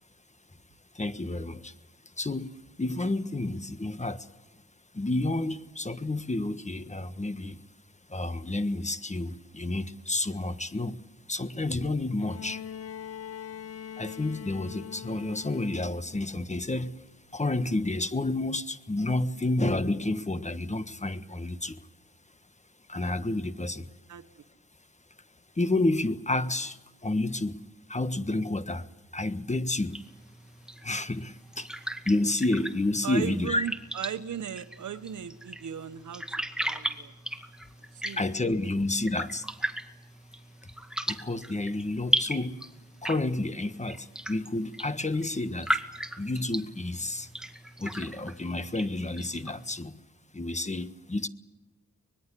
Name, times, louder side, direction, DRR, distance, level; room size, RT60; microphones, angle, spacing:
voice 1, 0.9-1.7 2.2-4.3 4.9-7.6 8.1-11.0 11.3-12.6 14.0-17.0 17.3-21.9 22.9-23.9 25.5-27.6 27.9-30.0 30.8-31.7 32.0-33.7 38.0-39.5 41.1-42.7 43.0-45.8 46.2-47.3 47.8-50.0 50.3-51.3, left 2 dB, 25° left, 1.4 m, -30 dB
Bowed string instrument, 12.2-16.2 17.5-17.6, left 9 dB, 55° left, 0.7 m, -42 dB
sound 1, 29.9-49.8, right 1 dB, 5° right, 2.1 m, -37 dB
voice 2, 33.0-36.2 36.6-37.1 38.0-38.2, right 9 dB, 80° right, 1.2 m, -36 dB
24.5 x 20.5 x 8.4 m
cardioid pair, 60°, 30 cm